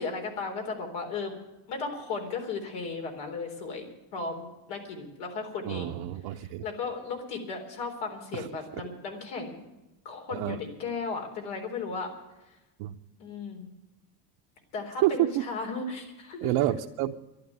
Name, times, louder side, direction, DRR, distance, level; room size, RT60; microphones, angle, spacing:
voice 1, 0.0-1.3 1.7-5.9 6.6-9.7 10.0-12.1 13.2-13.7 14.7-16.6, left 4 dB, 90° left, 3 dB, 4.0 m, -35 dB
voice 2, 5.6-6.6 8.3-8.5 10.3-10.6 12.8-13.0 15.0-15.4 16.4-17.1, right 14 dB, 75° right, 1 dB, 0.9 m, -28 dB
11.5 x 11.0 x 9.4 m, 1.0 s
cardioid pair, 115°, 49 cm